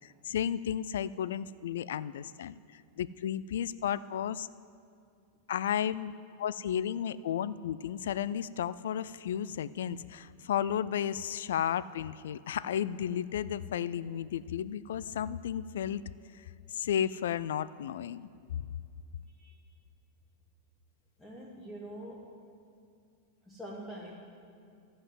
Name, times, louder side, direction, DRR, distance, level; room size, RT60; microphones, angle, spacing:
voice 1, 0.0-4.5 5.5-16.0 16.3-16.4 16.7-18.3, left 9 dB, 90° left, 17 dB, 0.3 m, -33 dB
voice 2, 21.2-22.3 23.5-24.1, right 1 dB, 5° left, -5 dB, 1.1 m, -44 dB
14.5 x 5.6 x 7.6 m, 2.4 s
supercardioid pair, 170°, 0 cm